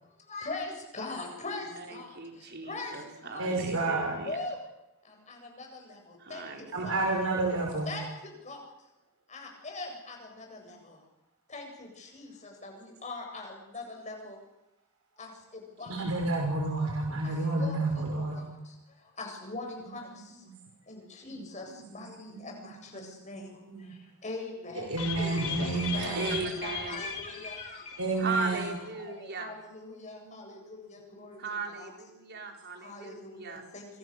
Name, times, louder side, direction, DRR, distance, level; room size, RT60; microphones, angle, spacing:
voice 1, 0.3-2.1 2.7-2.9 3.2-3.5 4.3-4.6 5.3-6.9 7.8-8.6 9.3-10.8 11.5-14.4 15.2-15.3 15.8-16.1 17.2-18.5 19.2-20.1 20.9-23.5 24.2-26.2 26.6-27.8 28.4-28.5 29.0-31.4 31.7-31.9 32.8-33.9, left 3 dB, 35° left, 2 dB, 8.0 m, -41 dB
voice 2, 1.8-4.4 6.2-7.1 25.8-27.1 28.2-29.6 31.4-33.6, right 4 dB, 50° right, 3 dB, 4.5 m, -38 dB
voice 3, 3.4-4.2 6.7-7.9 15.9-18.4 21.3-21.4 21.7-21.8 22.3-23.1 23.3-23.9 24.7-26.4 28.0-28.7 30.2-30.3 31.1-31.3, right 2 dB, 75° right, 1 dB, 5.5 m, -31 dB
sound 1, 25.0-28.4 28.7-28.8 29.1-29.2, left 6 dB, 80° left, 5.2 m, -38 dB
28.0 x 26.5 x 6.9 m, 0.91 s
head